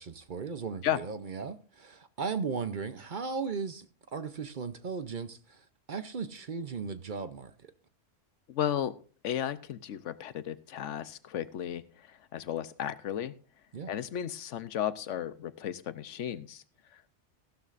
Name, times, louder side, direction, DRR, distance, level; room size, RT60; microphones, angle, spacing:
voice 1, 0.0-7.5 13.7-13.9, right 5 dB, 45° right, 0.8 m, -37 dB
voice 2, 8.5-8.9 9.2-13.3 13.9-16.6 16.9-17.0, left 10 dB, 80° left, 1.1 m, -34 dB
15.5 x 12.0 x 2.5 m
omnidirectional pair, 1.3 m